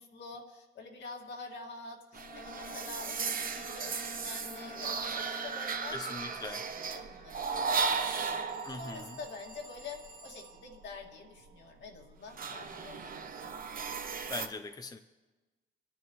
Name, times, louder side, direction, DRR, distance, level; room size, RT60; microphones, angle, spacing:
voice 1, 0.0-13.6, left 4 dB, 65° left, 2.3 m, -47 dB
Bowed string instrument, 2.1-6.2, left 3 dB, 45° left, 1.6 m, -49 dB
sound 1, 2.1-10.1 10.5-14.5, right 5 dB, 45° right, 1.0 m, -36 dB
Telephone, 2.5-4.8 8.5-10.7, right 3 dB, 85° right, 2.6 m, -55 dB
voice 2, 5.9-6.6 8.7-9.2 14.3-15.0, left 3 dB, 20° left, 0.7 m, -41 dB
25.0 x 10.0 x 3.1 m
cardioid pair, 90°, 20 cm